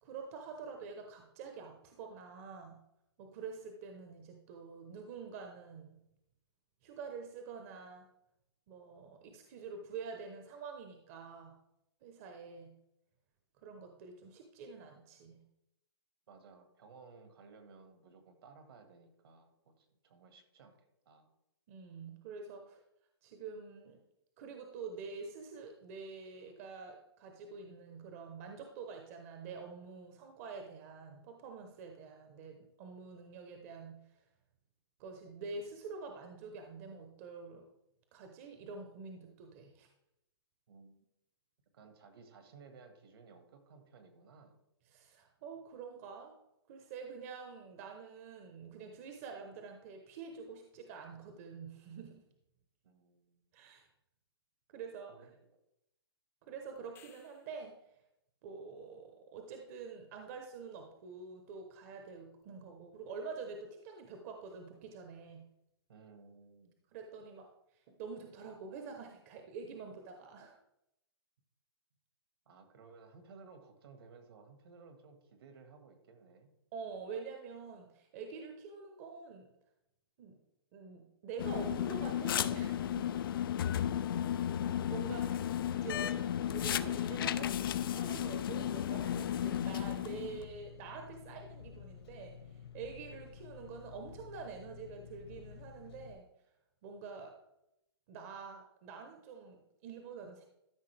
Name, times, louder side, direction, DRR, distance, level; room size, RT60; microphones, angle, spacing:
voice 1, 0.0-2.8 3.2-6.0 6.8-8.0 8.7-11.6 12.0-12.7 13.6-15.4 21.7-22.8 23.2-24.0 24.4-34.0 35.0-37.6 38.1-39.9 44.9-46.3 46.7-52.2 53.5-53.9 54.7-55.1 56.4-57.7 58.4-65.5 66.9-67.5 68.0-70.6 76.7-79.5 80.2-80.4 80.7-83.1 84.9-96.3 96.8-97.3 98.1-100.4, right 5 dB, 35° right, 4 dB, 0.9 m, -47 dB
voice 2, 16.3-20.8 21.0-21.3 40.7-41.1 41.7-44.6 52.8-53.5 55.1-55.3 65.9-66.8 72.4-76.5 84.1-84.8, right 4 dB, 65° right, 7 dB, 1.8 m, -58 dB
sound 1, 56.8-57.7 62.4-62.5, left 9 dB, 15° left, 0.7 m, -62 dB
sound 2, 81.4-90.5, left 10 dB, 55° left, 0.4 m, -34 dB
Engine, 85.5-96.1, left 7 dB, 75° left, 1.7 m, -52 dB
12.5 x 5.4 x 3.4 m, 0.82 s
hypercardioid pair, 155°, 14 cm